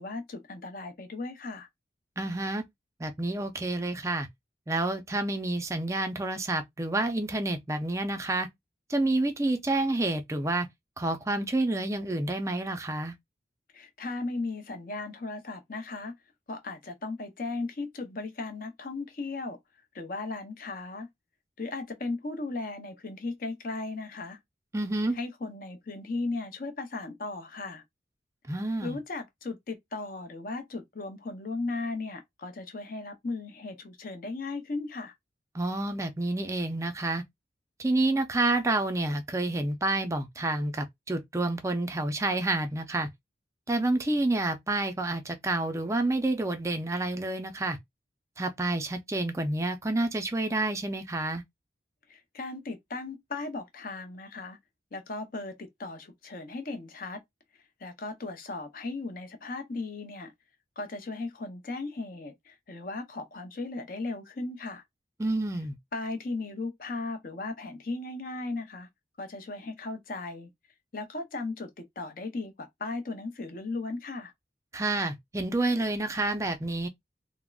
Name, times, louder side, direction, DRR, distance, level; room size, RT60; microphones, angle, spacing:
voice 1, 0.0-1.7 13.7-16.1 16.5-19.6 19.9-21.1 21.6-24.4 25.1-27.8 28.8-35.1 52.1-54.6 54.9-57.2 57.8-60.3 60.8-64.8 65.9-68.9 69.2-70.5 70.9-71.7 72.0-74.3, left 3 dB, 50° left, 0.7 m, -36 dB
voice 2, 2.2-2.6 3.0-4.3 4.7-8.5 8.9-10.7 11.0-13.1 24.7-25.2 28.5-29.0 35.5-37.2 37.8-43.1 43.7-47.8 48.4-51.4 65.2-65.8 74.7-76.9, right 2 dB, 15° right, 0.4 m, -29 dB
3.5 x 2.0 x 2.3 m
head